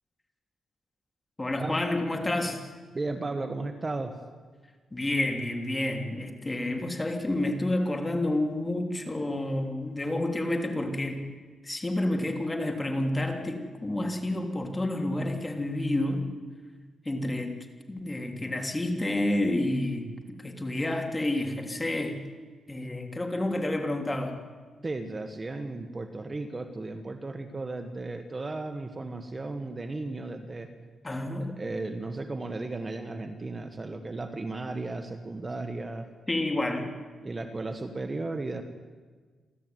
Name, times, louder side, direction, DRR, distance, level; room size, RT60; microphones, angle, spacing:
voice 1, 1.4-2.7 4.9-11.2 11.6-16.2 17.0-17.6 17.9-22.2 22.7-24.4 31.0-31.5 36.3-36.9, left 1 dB, 20° left, 4 dB, 3.3 m, -29 dB
voice 2, 2.9-4.2 24.8-30.7 31.4-36.1 37.2-38.6, right 2 dB, 25° right, 7 dB, 1.7 m, -35 dB
29.0 x 13.0 x 9.5 m, 1.5 s
cardioid pair, 100°, 0 cm